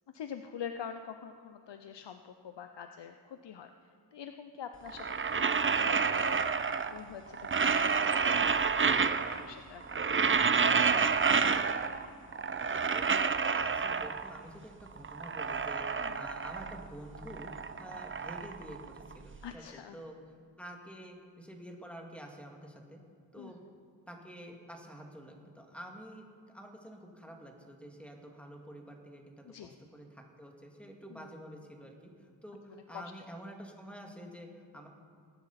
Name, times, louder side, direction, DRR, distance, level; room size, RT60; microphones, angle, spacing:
voice 1, 0.1-3.7 4.1-5.1 5.3-5.5 5.7-6.5 6.9-9.8 10.1-11.3 16.0-16.3 19.4-20.0 23.4-23.5 29.4-29.7 31.1-31.3 32.7-33.1, left 8 dB, 65° left, 8 dB, 0.7 m, -46 dB
sound 1, 4.9-7.0 7.3-9.5 9.8-12.1 12.3-14.4 14.9-16.9 17.2-19.4, right 5 dB, 30° right, 0.5 m, -29 dB
voice 2, 12.9-17.5 17.8-20.2 20.6-23.0 23.3-23.6 24.1-26.3 26.5-34.9, equal, 5° left, 1 dB, 2.1 m, -48 dB
20.5 x 9.8 x 4.2 m, 2.3 s
cardioid pair, 60°, 45 cm